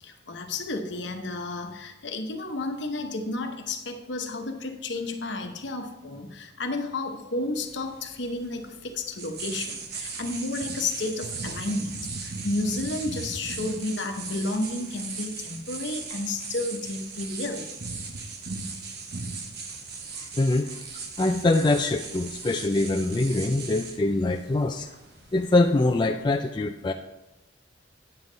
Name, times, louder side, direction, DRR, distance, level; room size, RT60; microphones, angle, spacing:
voice 1, 0.0-17.7, left 2 dB, 65° left, 5 dB, 1.0 m, -32 dB
sound 1, 7.5-26.0, right 4 dB, 55° right, 1.0 m, -38 dB
voice 2, 20.1-20.8 21.2-24.9 25.3-26.9, left 2 dB, 25° left, 4 dB, 0.3 m, -24 dB
9.4 x 7.4 x 3.9 m, 0.95 s
head